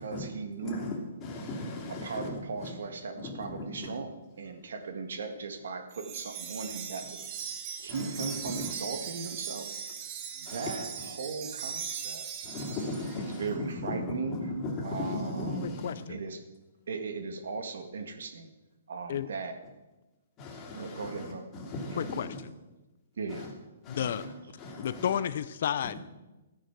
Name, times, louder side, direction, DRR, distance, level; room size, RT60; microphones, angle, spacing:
voice 1, 0.0-1.0 2.0-7.2 7.8-9.7 10.4-12.2 13.2-14.5 14.8-16.4 16.9-18.5 18.9-19.5 20.7-21.5 21.9-22.1 23.2-23.5, right 4 dB, 75° right, 7 dB, 1.8 m, -38 dB
voice 2, 0.6-2.7 3.2-3.9 7.9-8.7 10.5-10.9 12.4-16.0 20.4-22.4 23.3-23.5 23.8-25.1, left 2 dB, 20° left, -1 dB, 2.7 m, -37 dB
Wind chime, 5.9-13.4, right 7 dB, 25° right, 1.1 m, -39 dB
voice 3, 15.6-16.2 19.1-19.3 22.0-22.5 23.9-24.3 24.8-26.0, left 9 dB, 55° left, 15 dB, 0.5 m, -32 dB
14.0 x 9.2 x 6.0 m, 1.1 s
hypercardioid pair, 165°, 0 cm